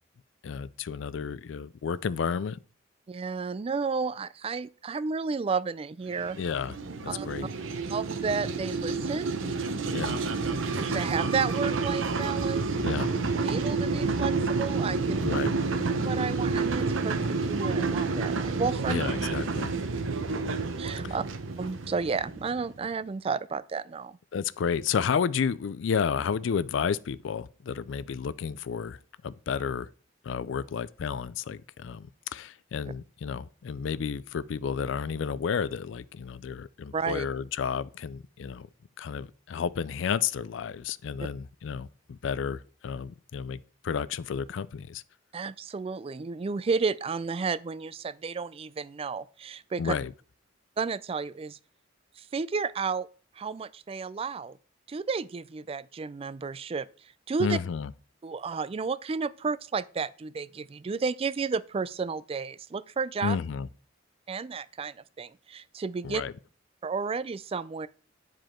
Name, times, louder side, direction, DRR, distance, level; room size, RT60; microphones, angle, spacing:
voice 1, 0.4-2.6 6.4-6.7 7.0-7.5 9.9-10.2 12.8-13.1 15.2-15.6 18.9-19.7 21.0-21.1 24.3-29.0 29.2-29.9 30.2-38.7 39.0-45.0 49.8-50.1 57.4-57.9 63.2-63.7 66.0-66.3, left 6 dB, 70° left, 0.4 m, -31 dB
voice 2, 3.1-6.4 7.1-7.3 7.9-9.4 10.8-12.6 13.4-15.2 16.0-19.0 20.8-21.2 21.6-24.2 36.9-37.3 45.3-49.9 50.8-51.6 52.2-53.1 53.4-54.6 54.9-56.9 57.3-57.6 58.2-63.4 64.3-66.2 66.8-67.9, right 5 dB, 30° right, 0.3 m, -32 dB
sound 1, 6.1-22.8, right 4 dB, 85° right, 0.8 m, -29 dB
9.4 x 5.0 x 4.4 m
head